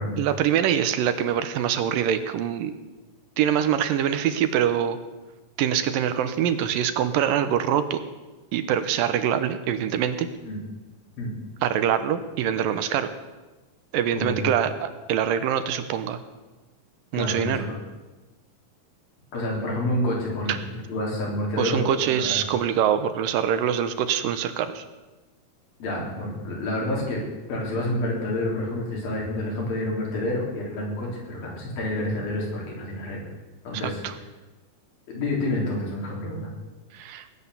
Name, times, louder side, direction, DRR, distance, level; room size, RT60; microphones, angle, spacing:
voice 1, 0.2-2.7 3.4-5.0 5.6-8.0 8.5-10.3 11.6-13.1 13.9-16.2 17.1-17.7 20.5-20.6 21.6-24.8 34.0-34.1 36.9-37.2, right 9 dB, 80° right, 10 dB, 2.5 m, -24 dB
voice 2, 14.1-14.6 17.1-17.8 19.3-22.4 25.8-27.2 27.5-33.3 33.7-34.0 35.1-36.5, left 1 dB, 80° left, -2 dB, 5.5 m, -28 dB
19.5 x 8.9 x 7.1 m, 1.2 s
omnidirectional pair, 4.1 m